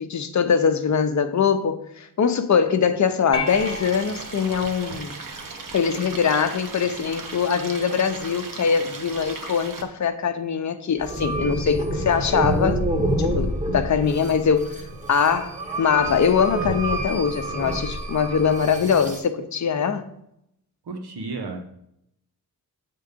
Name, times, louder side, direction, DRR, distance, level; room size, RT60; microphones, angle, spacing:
voice 1, 0.0-5.1 5.7-12.9 13.2-14.8 15.1-20.1, left 6 dB, 50° left, 0.7 m, -22 dB
sound 1, 3.3-5.8, left 3 dB, 15° left, 0.6 m, -34 dB
Stream, 3.5-9.8, right 4 dB, 55° right, 1.0 m, -37 dB
sound 2, 11.0-19.2, right 1 dB, 20° right, 1.0 m, -27 dB
voice 2, 20.8-21.6, right 3 dB, 85° right, 1.3 m, -32 dB
8.2 x 3.8 x 5.1 m
wide cardioid pair, 140°, 38 cm